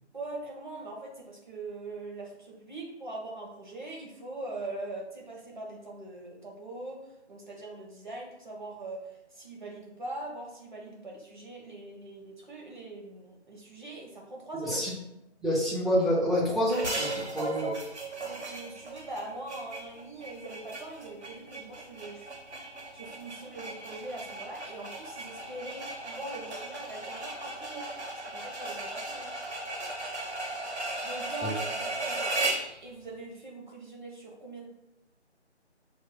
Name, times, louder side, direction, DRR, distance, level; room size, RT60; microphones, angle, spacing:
voice 1, 0.1-7.0 7.3-14.7 17.3-17.7 18.2-22.3 22.9-27.9 28.3-29.3 31.0-34.7, right 2 dB, 45° right, -2 dB, 0.9 m, -42 dB
voice 2, 14.6-14.9 15.4-17.7 31.4-31.5, equal, ahead, -6 dB, 0.4 m, -27 dB
sound 1, 16.7-32.7, right 2 dB, 70° right, 1.0 m, -36 dB
5.5 x 2.9 x 2.2 m, 0.86 s
figure-of-eight pair, 180°, 35 cm